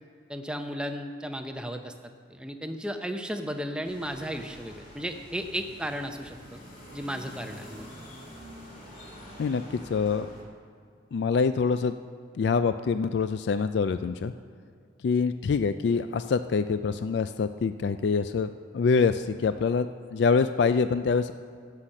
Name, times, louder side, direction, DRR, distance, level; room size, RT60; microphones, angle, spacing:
voice 1, 0.3-1.9 2.3-6.6 6.9-7.8, equal, 5° right, 6 dB, 0.6 m, -34 dB
sound 1, 3.8-10.4, equal, 45° left, 2.5 m, -46 dB
voice 2, 9.4-10.3 11.1-11.9 12.3-14.3 15.0-21.3, left 5 dB, 65° left, 11 dB, 0.3 m, -25 dB
16.0 x 5.8 x 6.5 m, 2.2 s
head